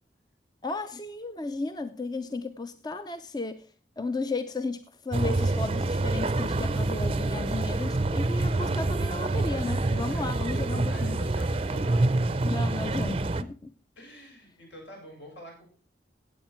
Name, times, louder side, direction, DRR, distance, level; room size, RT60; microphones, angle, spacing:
voice 1, 0.6-3.7 4.0-11.2 12.4-13.7, left 3 dB, 20° left, 10 dB, 0.5 m, -34 dB
sound 1, 5.1-13.4, right 2 dB, 30° right, 0.5 m, -27 dB
voice 2, 10.1-10.6 10.9-12.5 14.0-15.6, equal, 80° left, -1 dB, 7.3 m, -47 dB
16.0 x 8.3 x 4.4 m, 0.40 s
head